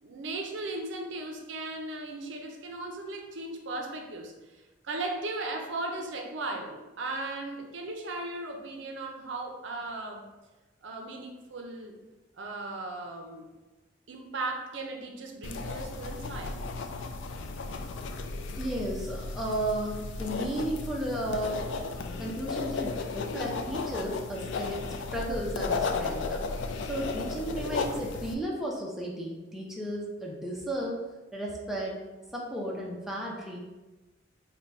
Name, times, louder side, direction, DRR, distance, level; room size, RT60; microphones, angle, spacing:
voice 1, 0.0-4.6 4.8-10.3 10.8-12.0 12.4-13.5 14.1-16.6, right 2 dB, 70° right, 2 dB, 0.5 m, -37 dB
sound 1, 15.4-28.3, left 4 dB, 65° left, 0.3 m, -34 dB
voice 2, 18.6-21.7 22.2-24.8 25.1-26.4 26.8-31.0 31.3-32.0 32.3-33.6, right 1 dB, ahead, -4 dB, 0.5 m, -34 dB
3.8 x 2.2 x 4.1 m, 1.1 s
head